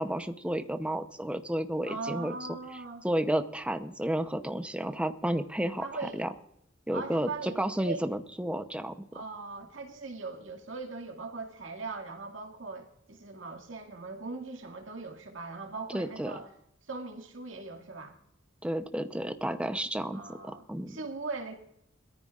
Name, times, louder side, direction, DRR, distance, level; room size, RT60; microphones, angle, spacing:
voice 1, 0.0-2.3 3.0-5.8 6.1-6.3 6.9-8.9 15.9-16.3 18.6-21.0, right 1 dB, 5° right, 8 dB, 0.8 m, -31 dB
voice 2, 1.8-3.0 5.8-6.2 6.9-7.6 7.8-8.0 9.1-16.5 16.9-18.2 20.1-21.6, right 3 dB, 75° right, 3 dB, 2.1 m, -40 dB
21.5 x 14.0 x 2.5 m, 0.76 s
head